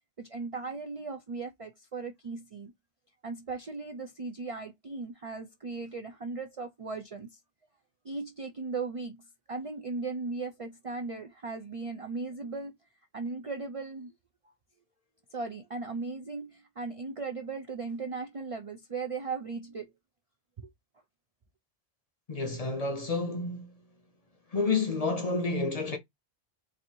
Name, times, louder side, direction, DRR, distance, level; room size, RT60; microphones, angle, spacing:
voice 1, 0.2-2.7 3.2-7.4 8.0-12.8 13.1-14.1 15.3-19.9 20.6-20.7, right 4 dB, 50° right, 0.4 m, -37 dB
voice 2, 22.3-23.8 24.5-26.0, left 3 dB, 40° left, 0.7 m, -30 dB
4.2 x 2.6 x 2.6 m
omnidirectional pair, 1.1 m